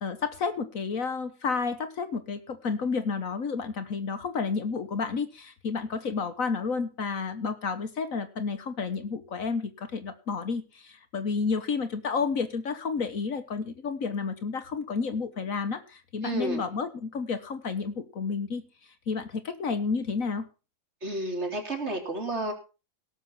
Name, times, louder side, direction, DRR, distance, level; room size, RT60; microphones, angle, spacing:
voice 1, 0.0-18.6 19.1-20.4, left 5 dB, 60° left, 9 dB, 1.5 m, -31 dB
voice 2, 16.2-16.7 21.0-22.5, right 1 dB, 45° right, 3 dB, 3.6 m, -31 dB
17.5 x 7.1 x 5.8 m, 0.34 s
omnidirectional pair, 1.7 m